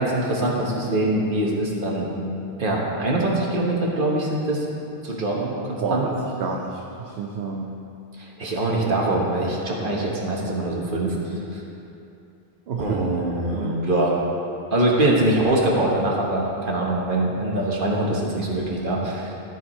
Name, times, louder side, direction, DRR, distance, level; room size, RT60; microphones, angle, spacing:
voice 1, 0.0-2.1 2.6-4.6 5.0-6.0 8.2-11.6 12.8-14.1 14.7-19.3, right 1 dB, 55° right, -3 dB, 1.4 m, -23 dB
voice 2, 6.4-7.7 12.7-13.1 13.5-13.8, right 5 dB, 85° right, 0 dB, 0.9 m, -29 dB
13.0 x 4.7 x 4.3 m, 2.8 s
omnidirectional pair, 1.0 m